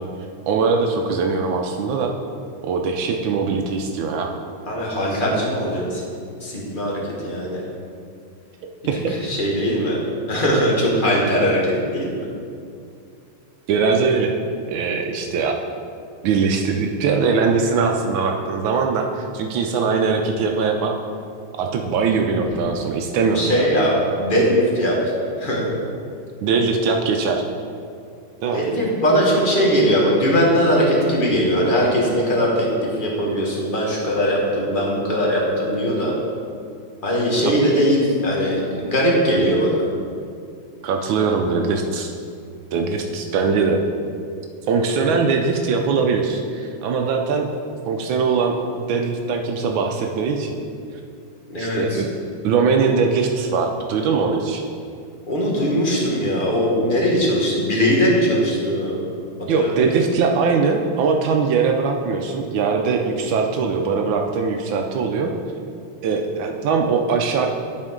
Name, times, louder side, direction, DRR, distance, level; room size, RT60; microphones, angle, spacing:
voice 1, 0.5-2.1 2.6-4.3 8.9-9.1 13.7-14.4 14.7-15.6 16.2-20.9 21.6-23.6 26.4-27.4 28.4-28.6 40.8-42.1 42.7-43.8 44.7-47.5 47.9-50.5 51.5-52.1 52.4-54.6 59.5-65.3 66.0-67.5, right 5 dB, 80° right, 3 dB, 1.4 m, -21 dB
voice 2, 4.6-6.0 6.4-7.6 8.9-10.0 10.3-12.2 23.3-25.0 25.4-25.7 28.5-36.1 37.0-39.8 51.5-52.0 55.3-59.0 59.5-59.9, equal, 30° left, -3 dB, 1.3 m, -20 dB
12.0 x 4.5 x 3.7 m, 2.4 s
omnidirectional pair, 2.2 m